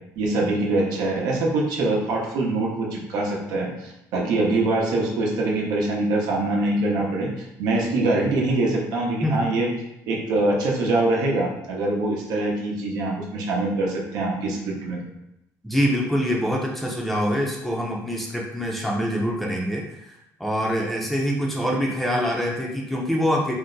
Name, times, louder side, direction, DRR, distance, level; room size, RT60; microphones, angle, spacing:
voice 1, 0.1-7.3 7.6-9.7 10.1-15.0, right 2 dB, 80° right, -2 dB, 0.8 m, -24 dB
voice 2, 15.6-23.5, equal, ahead, -2 dB, 0.5 m, -25 dB
2.5 x 2.1 x 3.8 m, 0.85 s
cardioid pair, 115°, 7 cm